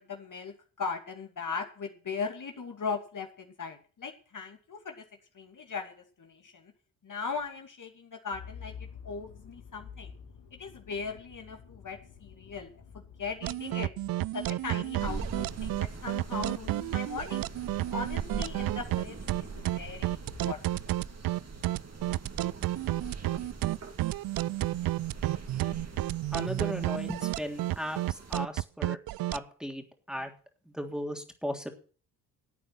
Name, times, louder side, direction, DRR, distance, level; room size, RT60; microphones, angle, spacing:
voice 1, 0.0-5.0 5.3-6.7 7.0-10.1 10.6-12.7 13.2-13.9 14.3-17.5 17.9-20.2 20.4-20.6, left 5 dB, 40° left, 4 dB, 2.5 m, -38 dB
Motor vehicle (road), 8.3-20.7, left 6 dB, 70° left, 2.7 m, -51 dB
sound 1, 13.4-29.4, right 16 dB, 50° right, 0.6 m, -31 dB
sound 2, 15.0-28.4, right 3 dB, 35° right, 2.8 m, -43 dB
voice 2, 26.3-29.0 29.3-30.3 30.7-31.7, equal, ahead, 4 dB, 3.3 m, -36 dB
13.5 x 8.8 x 6.0 m, 0.39 s
hypercardioid pair, 50°, 45 cm